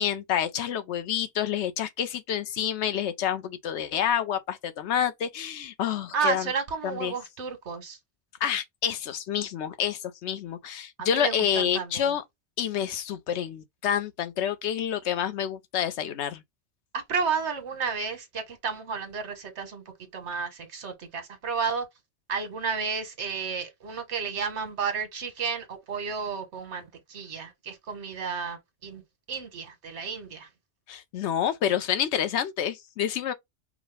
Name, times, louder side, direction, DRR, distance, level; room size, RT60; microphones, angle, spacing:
voice 1, 0.0-6.5 6.8-7.1 8.4-12.2 12.6-16.4 30.9-33.3, left 9 dB, 85° left, 0.9 m, -28 dB
voice 2, 6.1-8.0 11.0-12.1 16.9-19.8 20.1-21.9 22.3-29.0 29.3-30.5, right 5 dB, 85° right, 1.3 m, -32 dB
4.7 x 2.1 x 3.2 m
omnidirectional pair, 1.1 m